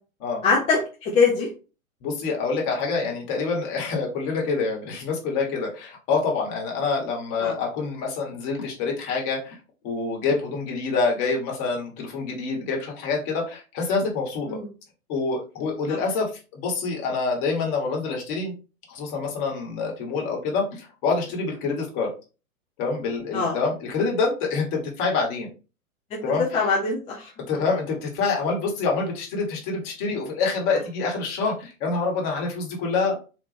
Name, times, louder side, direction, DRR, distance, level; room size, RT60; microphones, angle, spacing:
voice 1, 0.4-1.5 7.4-7.5 14.5-14.7 23.3-23.6 26.5-27.3, left 4 dB, 15° left, -3 dB, 0.6 m, -22 dB
voice 2, 2.0-9.6 9.8-14.6 15.1-18.5 18.9-22.1 22.8-25.5 26.2-26.7 27.5-33.2, left 4 dB, 35° left, -1 dB, 1.6 m, -26 dB
4.1 x 2.9 x 3.3 m, 0.33 s
figure-of-eight pair, 110°, 44 cm